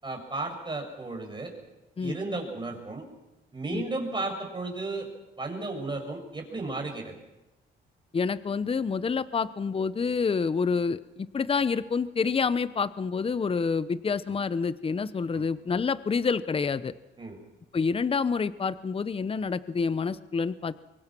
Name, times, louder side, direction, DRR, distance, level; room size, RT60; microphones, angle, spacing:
voice 1, 0.0-1.5 2.0-3.0 3.5-5.1 5.4-7.1 15.3-15.5 17.2-17.4, right 2 dB, 25° right, 2 dB, 7.4 m, -34 dB
voice 2, 8.1-16.9 17.7-20.8, left 5 dB, 30° left, 15 dB, 0.9 m, -28 dB
24.0 x 23.5 x 6.1 m, 1.0 s
cardioid pair, 90°, 20 cm